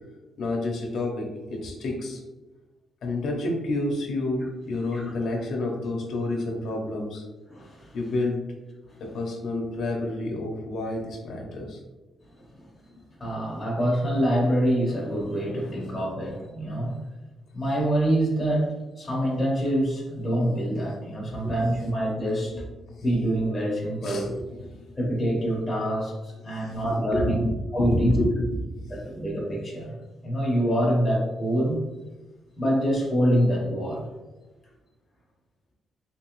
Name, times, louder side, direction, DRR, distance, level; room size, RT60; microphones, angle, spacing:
voice 1, 0.4-2.2 3.0-7.2 7.9-8.4 9.0-11.8 21.4-21.5 22.5-22.6 24.0-24.3 24.7-24.8 26.6-27.3 27.8-28.5, left 2 dB, 65° left, 1 dB, 0.6 m, -29 dB
voice 2, 7.5-8.0 12.4-12.6 13.2-17.0 17.5-22.6 23.0-24.3 25.0-27.4 27.7-28.2 28.9-30.0 30.2-31.8 32.6-34.1, equal, 10° left, -4 dB, 0.8 m, -26 dB
3.4 x 2.9 x 3.0 m, 1.1 s
cardioid pair, 155°, 0 cm